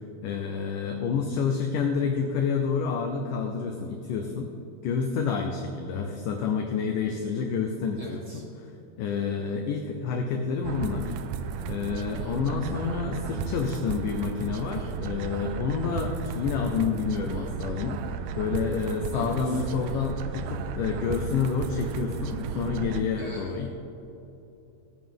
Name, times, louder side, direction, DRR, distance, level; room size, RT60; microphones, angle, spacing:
voice 1, 0.2-4.5 4.8-8.2 8.6-8.7 9.0-11.2 11.7-23.7, left 5 dB, 80° left, 3 dB, 1.9 m, -29 dB
voice 2, 8.0-8.4 17.6-17.8 19.1-19.6 23.2-23.7, left 1 dB, 35° right, -7 dB, 3.5 m, -41 dB
sound 1, 10.6-23.0, right 7 dB, 80° right, 2.2 m, -34 dB
17.0 x 8.9 x 3.6 m, 2.9 s
omnidirectional pair, 4.6 m